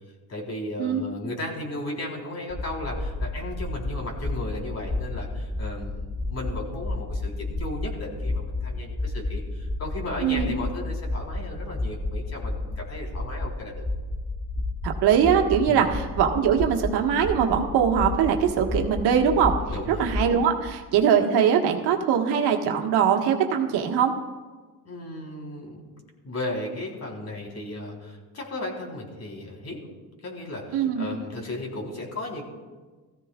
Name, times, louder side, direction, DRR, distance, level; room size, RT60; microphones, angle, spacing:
voice 1, 0.3-13.8 15.7-15.8 19.7-20.0 24.9-25.8 26.2-29.9 30.2-32.4, left 1 dB, 40° left, 0 dB, 4.0 m, -35 dB
sound 1, 2.5-20.4, left 2 dB, ahead, 1.4 m, -31 dB
voice 2, 14.8-19.5 20.0-24.1 30.7-31.1, right 8 dB, 80° right, 2 dB, 1.5 m, -22 dB
18.0 x 15.0 x 2.4 m, 1.3 s
supercardioid pair, 75°, 39 cm